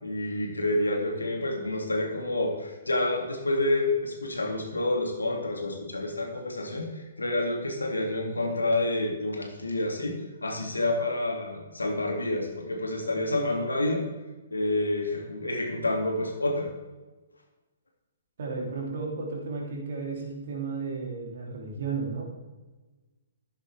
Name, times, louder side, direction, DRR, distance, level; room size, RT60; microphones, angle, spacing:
voice 1, 0.0-14.1 14.5-16.7, left 2 dB, 80° left, 2 dB, 2.7 m, -28 dB
voice 2, 18.4-22.3, right 4 dB, 55° right, -1 dB, 3.4 m, -33 dB
13.5 x 11.0 x 3.6 m, 1.2 s
figure-of-eight pair, 125°, 0 cm